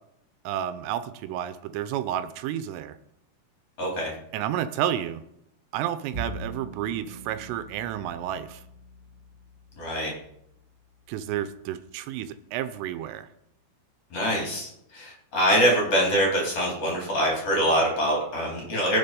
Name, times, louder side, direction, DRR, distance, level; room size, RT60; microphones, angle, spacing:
voice 1, 0.4-3.0 4.3-5.2 5.7-8.6 11.1-13.3, right 11 dB, 85° right, 11 dB, 3.2 m, -31 dB
voice 2, 3.8-4.1 9.8-10.1 14.1-19.0, equal, 30° left, -3 dB, 4.5 m, -24 dB
Bowed string instrument, 6.1-12.6, right 2 dB, 40° right, 1.8 m, -43 dB
21.5 x 7.5 x 5.3 m, 0.79 s
omnidirectional pair, 5.8 m